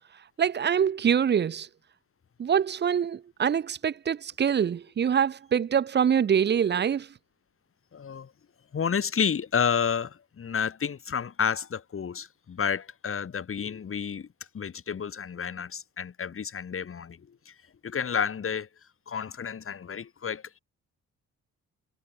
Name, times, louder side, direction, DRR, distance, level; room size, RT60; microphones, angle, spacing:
voice 1, 0.4-1.7 2.4-7.1, right 8 dB, 35° right, 0.7 m, -24 dB
voice 2, 7.9-8.3 8.7-14.3 14.5-17.5 17.8-18.7 19.1-20.6, left 7 dB, 45° left, 4.7 m, -30 dB
cardioid pair, 90°, 30 cm